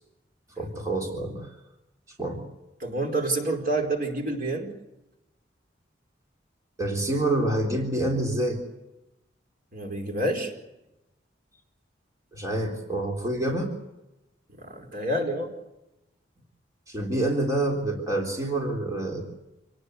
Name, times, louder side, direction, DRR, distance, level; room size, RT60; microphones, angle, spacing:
voice 1, 0.6-1.5 2.2-2.4 6.8-8.6 12.3-13.7 16.9-19.2, right 1 dB, 15° right, 0 dB, 3.6 m, -27 dB
voice 2, 2.8-4.8 9.7-10.5 14.6-15.5, right 2 dB, 45° right, 3 dB, 4.7 m, -28 dB
27.5 x 19.5 x 8.2 m, 0.93 s
head